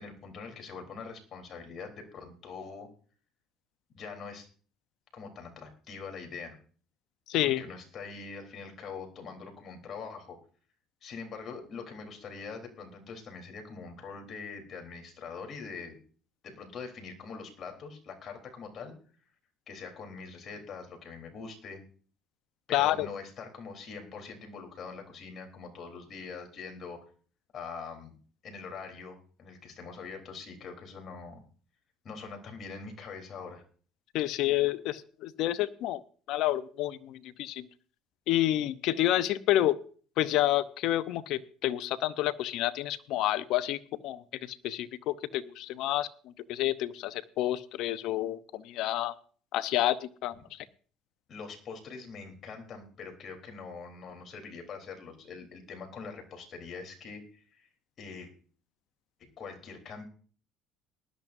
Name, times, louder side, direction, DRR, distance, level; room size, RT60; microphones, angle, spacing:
voice 1, 0.0-2.9 3.9-4.5 5.1-6.6 7.4-10.4 11.0-16.0 16.4-18.9 19.7-21.8 22.7-27.0 27.5-28.2 28.4-31.4 32.0-33.6 51.3-57.7 58.0-58.3 59.2-60.0, left 5 dB, 50° left, 4 dB, 3.6 m, -43 dB
voice 2, 7.3-7.6 22.7-23.1 34.1-36.0 36.3-37.7 38.3-39.8 40.2-44.2 44.5-46.1 46.5-49.1 49.5-50.6, left 14 dB, 70° left, 14 dB, 0.8 m, -29 dB
19.5 x 12.0 x 2.7 m, 0.42 s
supercardioid pair, 90°, 0 cm